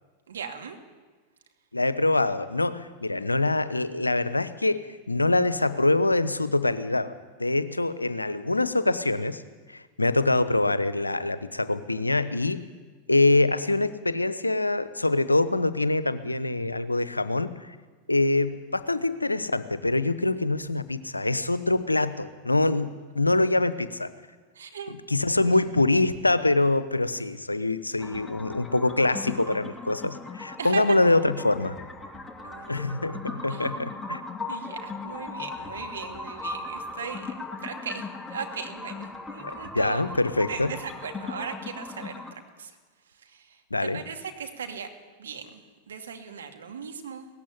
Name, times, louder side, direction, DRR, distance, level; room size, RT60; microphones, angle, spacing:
voice 1, 0.3-0.8 24.5-25.0 30.6-31.0 32.4-32.8 33.5-33.7 34.5-37.3 37.6-40.0 40.5-42.8 43.1-44.9 45.2-45.6 45.9-47.3, right 6 dB, 70° right, 5 dB, 2.7 m, -38 dB
voice 2, 1.7-7.1 7.4-9.4 9.7-12.7 13.1-17.8 18.1-24.1 25.1-31.8 32.7-34.2 39.4-40.7 43.7-44.0, left 2 dB, 85° left, 15 dB, 0.9 m, -24 dB
sound 1, 28.0-42.3, left 3 dB, 10° left, 2.4 m, -38 dB
18.0 x 15.0 x 10.0 m, 1.4 s
figure-of-eight pair, 90°, 0 cm